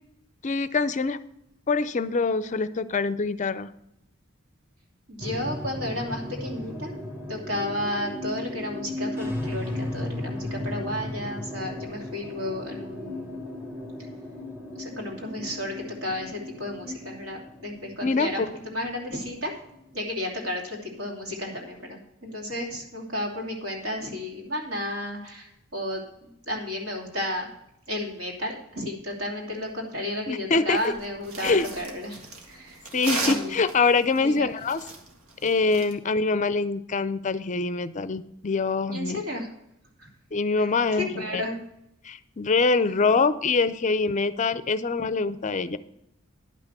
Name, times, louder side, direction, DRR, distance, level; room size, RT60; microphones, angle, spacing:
voice 1, 0.4-1.2 1.7-3.7 16.9-17.0 18.0-18.5 30.3-30.9 31.4-31.7 32.9-34.8 35.4-39.2 40.3-41.4 42.0-45.8, left 4 dB, 35° left, 14 dB, 0.5 m, -24 dB
voice 2, 5.1-6.9 7.3-13.4 14.7-19.5 19.9-27.5 27.9-32.8 33.2-33.6 34.2-34.5 38.9-39.5 40.0-40.1 40.5-41.6, left 1 dB, 65° right, -1 dB, 2.9 m, -33 dB
sound 1, 5.2-19.8, left 1 dB, 10° right, 1.2 m, -36 dB
sound 2, 30.8-35.9, right 2 dB, 85° right, 1.8 m, -35 dB
11.0 x 5.9 x 6.7 m, 0.80 s
head